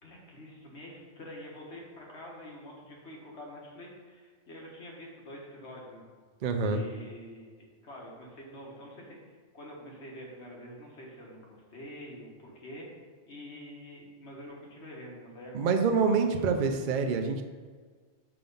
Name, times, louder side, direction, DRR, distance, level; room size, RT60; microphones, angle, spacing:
voice 1, 0.0-6.1 6.6-16.9, equal, 85° left, -2 dB, 1.6 m, -47 dB
voice 2, 6.4-6.8 15.5-17.4, right 5 dB, 55° right, 5 dB, 0.6 m, -26 dB
5.8 x 3.6 x 5.3 m, 1.5 s
omnidirectional pair, 1.1 m